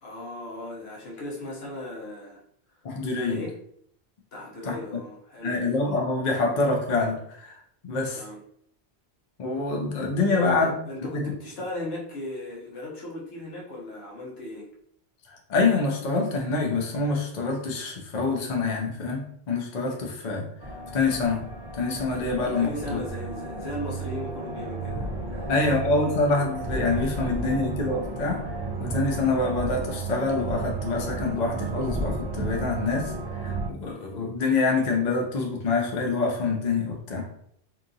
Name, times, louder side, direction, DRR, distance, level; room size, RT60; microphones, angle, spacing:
voice 1, 0.0-2.4 3.1-3.6 4.3-5.5 8.1-8.4 10.2-14.7 22.6-25.5, left 1 dB, 70° left, -3 dB, 1.1 m, -37 dB
voice 2, 2.8-3.4 4.7-5.0 5.4-8.2 9.4-10.7 11.1-11.3 15.3-20.5 20.9-21.5 21.7-23.0 25.5-28.4 28.8-37.3, left 3 dB, 50° left, 0 dB, 0.6 m, -26 dB
sound 1, 20.6-33.7, right 3 dB, 35° right, 0.4 m, -33 dB
2.8 x 2.4 x 2.6 m, 0.68 s
omnidirectional pair, 1.1 m